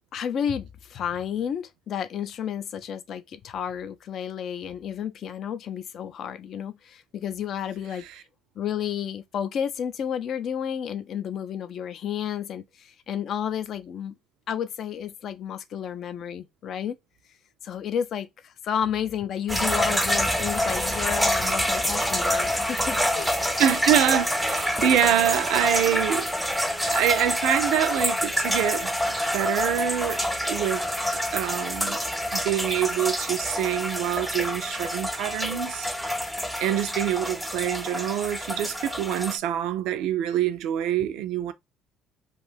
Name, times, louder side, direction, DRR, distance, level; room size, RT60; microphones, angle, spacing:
voice 1, 0.1-8.1 8.6-14.1 14.5-17.0 17.6-23.4 41.0-41.1, left 8 dB, 55° left, 0.4 m, -31 dB
sound 1, 19.5-39.4, equal, ahead, 0.5 m, -27 dB
voice 2, 23.6-26.3 26.8-28.9 29.3-30.2 30.5-32.0 32.3-35.9 36.6-41.5, right 11 dB, 80° right, 0.4 m, -25 dB
2.6 x 2.3 x 3.2 m
cardioid pair, 110°, 0 cm